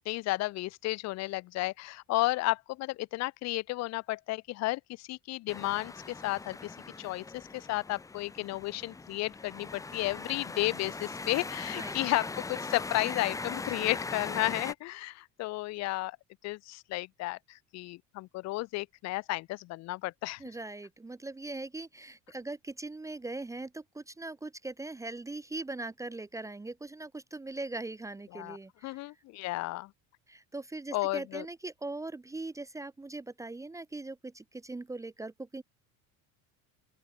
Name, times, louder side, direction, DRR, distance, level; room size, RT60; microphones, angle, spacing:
voice 1, 0.1-16.2 16.4-20.4 28.3-28.6 28.8-29.9 30.9-31.5, left 19 dB, 50° left, 0.7 m, -33 dB
sound 1, 5.5-14.7, left 3 dB, 10° left, 0.9 m, -40 dB
voice 2, 20.4-29.0 30.3-35.6, right 2 dB, 10° right, 1.3 m, -40 dB
open air
cardioid pair, 170°, 36 cm